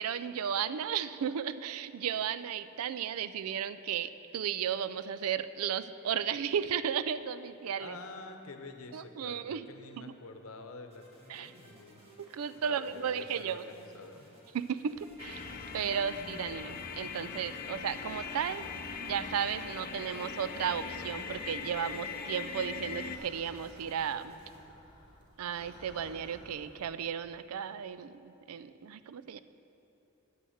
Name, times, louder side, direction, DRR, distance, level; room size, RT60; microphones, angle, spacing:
voice 1, 0.0-8.0 8.9-9.7 10.0-10.1 11.3-11.5 12.2-13.6 14.5-18.7 19.0-24.3 25.4-29.4, right 8 dB, 85° right, 14 dB, 0.4 m, -34 dB
voice 2, 7.8-11.0 11.3-12.0 12.6-14.3, left 3 dB, 75° left, 6 dB, 0.8 m, -47 dB
sound 1, 10.9-24.6, equal, 30° right, 2.0 m, -59 dB
sound 2, 14.9-26.9, left 1 dB, 20° left, 1.3 m, -54 dB
sound 3, 15.2-23.2, left 6 dB, 45° left, 0.5 m, -41 dB
9.3 x 6.3 x 7.8 m, 2.9 s
head